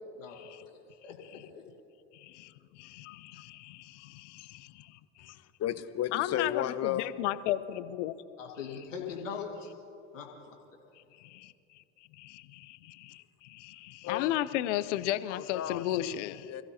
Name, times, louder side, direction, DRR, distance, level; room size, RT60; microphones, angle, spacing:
voice 1, 0.1-0.7 1.0-1.6 8.4-9.7 10.1-10.6, left 6 dB, 85° left, -1 dB, 2.2 m, -41 dB
voice 2, 2.1-5.3 6.1-8.1 11.2-11.5 12.2-16.5, left 14 dB, 70° left, 14 dB, 0.7 m, -35 dB
voice 3, 5.3-7.1 14.0-14.4 15.3-16.1 16.4-16.6, left 11 dB, 45° left, 12 dB, 1.0 m, -34 dB
27.0 x 15.5 x 2.9 m, 2.5 s
hypercardioid pair, 70°, 37 cm